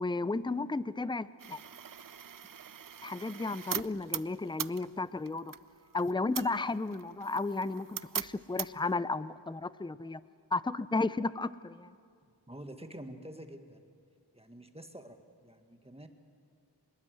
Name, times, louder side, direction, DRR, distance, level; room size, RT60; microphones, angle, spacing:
voice 1, 0.0-1.6 3.0-5.5 5.9-10.2 10.5-11.9, left 3 dB, 10° left, 15 dB, 0.6 m, -33 dB
sound 1, 1.4-8.9, right 8 dB, 50° right, 0.5 m, -41 dB
voice 2, 12.5-13.8 14.3-16.1, right 1 dB, 15° right, 6 dB, 1.8 m, -47 dB
25.5 x 21.0 x 7.8 m, 2.4 s
wide cardioid pair, 60°, 42 cm